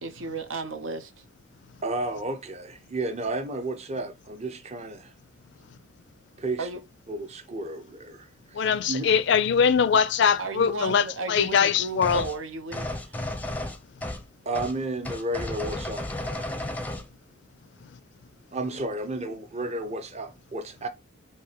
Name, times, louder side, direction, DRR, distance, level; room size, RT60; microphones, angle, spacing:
voice 1, 0.0-1.1 6.6-6.8 10.4-13.2, right 3 dB, 80° right, 0.7 m, -34 dB
voice 2, 1.8-5.1 6.4-6.7 7.1-8.6 8.9-9.1 14.4-16.5 18.5-20.9, right 2 dB, 35° right, 0.7 m, -32 dB
voice 3, 8.6-12.2, left 7 dB, 60° left, 0.4 m, -22 dB
sound 1, 12.0-12.4 12.7-14.3 14.5-14.7 15.0-17.1, left 1 dB, 10° left, 0.5 m, -33 dB
4.7 x 2.8 x 2.8 m
head